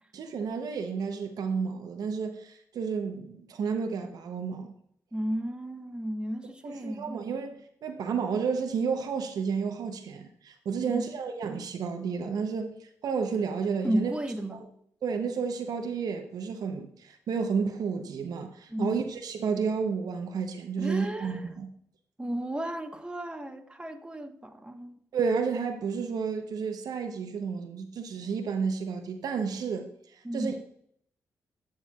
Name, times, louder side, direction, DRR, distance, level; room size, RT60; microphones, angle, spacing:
voice 1, 0.1-4.7 6.6-7.5 7.8-12.8 13.0-14.1 14.5-14.7 15.0-21.7 25.1-30.6, right 5 dB, 70° right, 0.7 m, -31 dB
voice 2, 5.1-7.2 10.8-11.1 13.8-14.6 18.7-19.0 20.8-21.5 22.2-25.0 30.2-30.6, right 1 dB, 15° right, 1.1 m, -33 dB
12.0 x 4.4 x 2.3 m
supercardioid pair, 55°, 7 cm